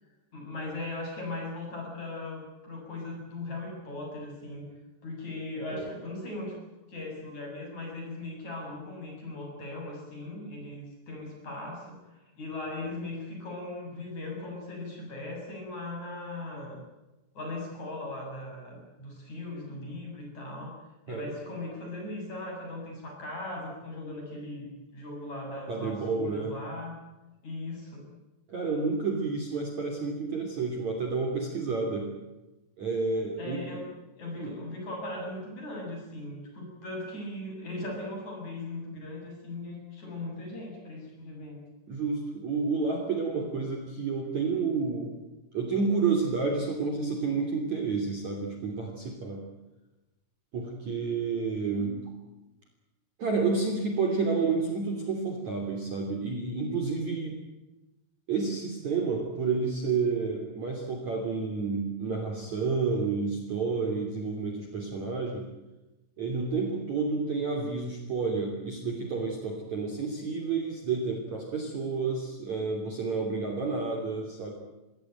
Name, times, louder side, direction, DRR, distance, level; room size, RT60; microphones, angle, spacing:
voice 1, 0.3-4.7 5.0-6.5 6.9-16.8 17.3-20.8 21.1-27.0 27.4-28.1 33.4-33.9 34.2-41.6, left 2 dB, 35° left, 0 dB, 8.5 m, -38 dB
voice 2, 25.7-26.5 28.5-32.1 32.8-33.7 34.4-34.6 41.9-45.1 45.5-49.4 50.5-52.1 53.2-57.3 58.3-65.5 66.2-74.5, right 4 dB, 40° right, 1 dB, 3.7 m, -30 dB
24.5 x 18.0 x 9.2 m, 1.0 s
omnidirectional pair, 6.0 m